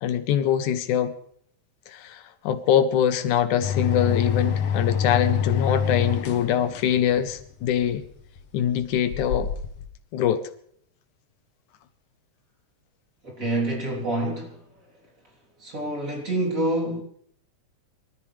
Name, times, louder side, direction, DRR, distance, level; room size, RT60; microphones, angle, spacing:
voice 1, 0.0-1.1 1.9-8.0 8.5-9.5 10.1-10.5, left 9 dB, 85° left, 2.4 m, -23 dB
sound 1, 3.6-9.9, left 7 dB, 60° left, 2.0 m, -27 dB
voice 2, 13.2-14.9 15.6-17.0, right 1 dB, 25° right, 3.6 m, -27 dB
24.5 x 14.0 x 3.3 m
omnidirectional pair, 3.5 m